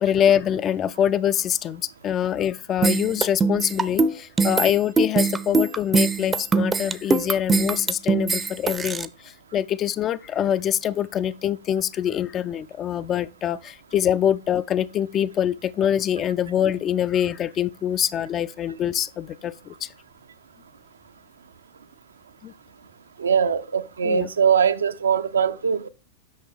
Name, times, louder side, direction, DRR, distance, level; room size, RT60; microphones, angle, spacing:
voice 1, 0.0-19.9 22.4-22.5 24.0-24.3, left 9 dB, 30° left, 0.4 m, -24 dB
sound 1, 2.8-9.0, right 4 dB, 15° right, 0.6 m, -22 dB
voice 2, 23.2-25.9, right 7 dB, 70° right, 0.6 m, -21 dB
8.7 x 6.1 x 3.6 m
figure-of-eight pair, 90°, 0 cm